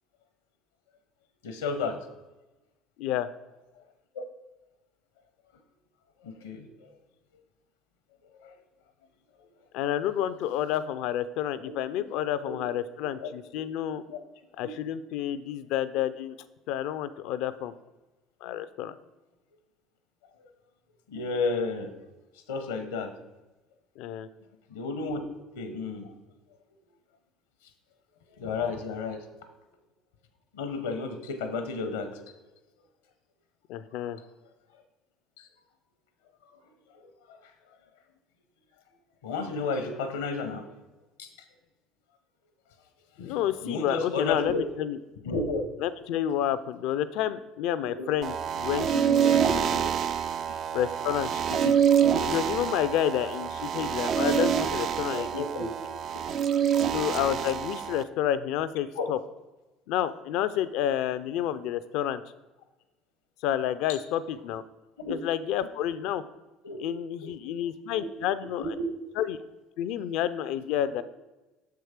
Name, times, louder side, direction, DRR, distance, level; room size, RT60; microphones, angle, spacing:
voice 1, 1.4-2.0 4.1-4.2 6.2-6.7 8.4-8.5 12.4-12.5 13.2-13.3 14.1-14.2 21.1-21.9 22.5-23.1 24.7-25.2 25.6-26.1 28.4-29.2 30.5-32.1 35.4-35.5 37.0-37.1 39.2-40.6 41.2-41.3 43.2-44.6 45.2-45.6 48.0-48.1 48.7-49.0 55.1-55.6 56.3-56.4 59.0-59.1 65.0-65.1 66.6-66.8 68.6-68.9, left 3 dB, 85° left, 8 dB, 0.8 m, -32 dB
voice 2, 3.0-3.3 9.7-14.0 14.6-16.4 16.7-17.7 18.4-18.9 24.0-24.3 33.7-34.2 43.2-45.0 45.8-49.9 50.7-51.7 52.2-55.7 56.9-59.2 59.9-62.2 63.4-64.6 65.1-66.2 66.8-68.7 69.2-69.4 69.8-71.0, left 11 dB, 70° left, 14 dB, 0.4 m, -30 dB
sound 1, 48.2-58.0, right 8 dB, 55° right, 0.4 m, -26 dB
6.4 x 4.6 x 5.0 m, 1.1 s
hypercardioid pair, 70°, 0 cm